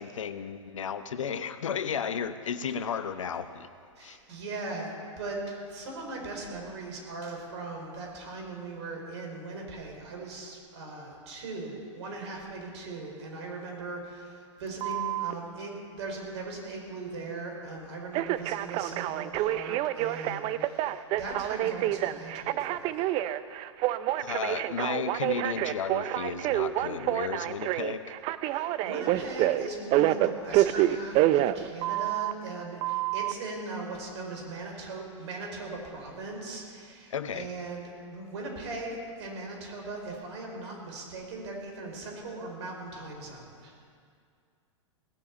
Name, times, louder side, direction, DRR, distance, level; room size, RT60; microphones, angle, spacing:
voice 1, 0.0-3.7 4.0-4.2 24.2-28.1 37.1-37.5, left 7 dB, 80° left, 11 dB, 0.9 m, -34 dB
voice 2, 3.9-23.1 28.5-43.7, right 3 dB, 60° right, 1 dB, 4.8 m, -39 dB
Telephone, 14.8-15.3 18.1-32.3 32.8-33.3, right 14 dB, 35° right, 0.5 m, -28 dB
18.5 x 7.1 x 8.7 m, 2.2 s
hypercardioid pair, 110°, 16 cm